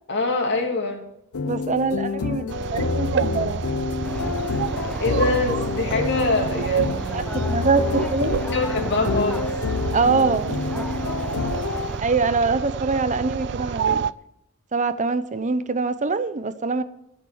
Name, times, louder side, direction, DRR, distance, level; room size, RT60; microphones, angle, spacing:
voice 1, 0.1-1.1 5.0-7.3 8.5-9.5, left 2 dB, 55° left, 2 dB, 2.9 m, -25 dB
sound 1, 1.3-11.9, left 4 dB, 85° left, 0.7 m, -28 dB
voice 2, 1.4-3.6 7.1-8.4 9.9-10.9 12.0-14.0 14.7-16.8, right 4 dB, 35° right, 13 dB, 0.8 m, -24 dB
sound 2, 2.5-14.1, right 7 dB, 55° right, 0.4 m, -29 dB
sound 3, 4.0-12.0, left 1 dB, 5° left, 0.6 m, -36 dB
15.0 x 7.5 x 8.0 m, 0.81 s
head